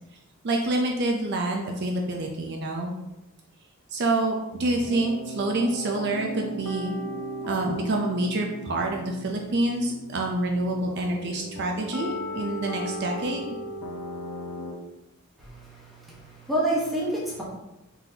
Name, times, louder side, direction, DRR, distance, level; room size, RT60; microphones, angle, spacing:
voice 1, 0.4-3.0 3.9-7.0 7.5-13.4, right 2 dB, 50° right, 1 dB, 0.5 m, -27 dB
sound 1, 4.5-14.7, equal, 85° left, 0.7 m, -37 dB
voice 2, 15.4-17.4, right 1 dB, ahead, -7 dB, 1.1 m, -29 dB
4.0 x 3.9 x 2.7 m, 0.95 s
head